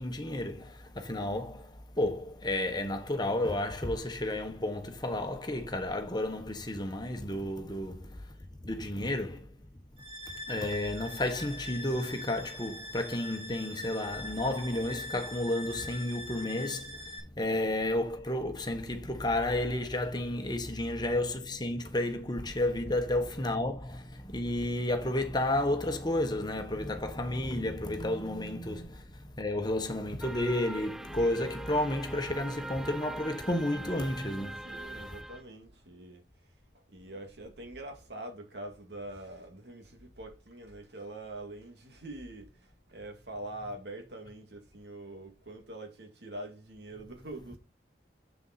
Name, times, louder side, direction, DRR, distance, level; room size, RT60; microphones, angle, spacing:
voice 1, 0.0-9.6 10.3-35.1, left 1 dB, 25° left, 1.3 m, -32 dB
sound 1, 10.0-17.2, left 1 dB, 40° right, 3.2 m, -43 dB
sound 2, 30.2-35.4, right 2 dB, ahead, 0.3 m, -43 dB
voice 2, 34.6-47.6, right 1 dB, 75° right, 2.3 m, -44 dB
7.1 x 7.1 x 4.2 m
head